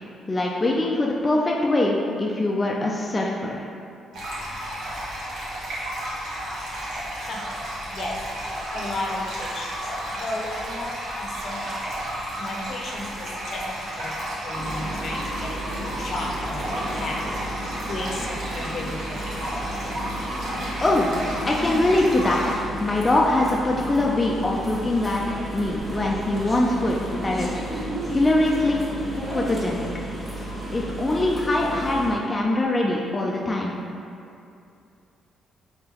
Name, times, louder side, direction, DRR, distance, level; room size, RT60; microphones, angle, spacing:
voice 1, 0.3-3.7 20.8-21.1 21.5-22.4 22.8-25.2 25.5-28.9 29.3-29.9 30.7-33.7, left 2 dB, 20° left, -2 dB, 0.4 m, -23 dB
sound 1, 4.1-22.6, right 1 dB, 75° right, 1.0 m, -32 dB
voice 2, 7.2-8.2 8.7-9.9 10.2-11.8 12.1-19.3, left 2 dB, 60° left, -1 dB, 0.6 m, -34 dB
sound 2, 14.5-32.2, right 1 dB, 15° right, 1.3 m, -33 dB
3.9 x 3.7 x 2.9 m, 2.5 s
cardioid pair, 90°, 0 cm